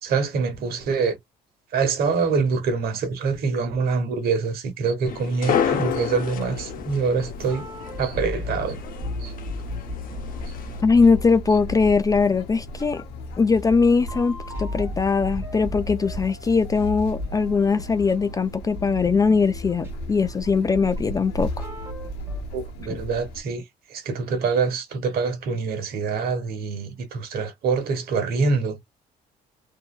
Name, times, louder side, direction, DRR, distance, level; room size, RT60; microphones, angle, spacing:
voice 1, 0.0-1.2 1.7-7.6 8.0-8.8 9.2-9.3 22.5-23.6 23.9-28.8, right 5 dB, 65° right, 1.1 m, -25 dB
sound 1, 5.1-10.8, left 8 dB, 55° left, 0.8 m, -30 dB
sound 2, 5.5-23.4, equal, 85° left, 0.8 m, -36 dB
sound 3, 7.3-22.4, left 2 dB, 15° right, 1.4 m, -37 dB
voice 2, 10.8-13.0 13.4-21.6, left 4 dB, 20° left, 0.3 m, -21 dB
2.8 x 2.6 x 2.2 m
cardioid pair, 110°, 17 cm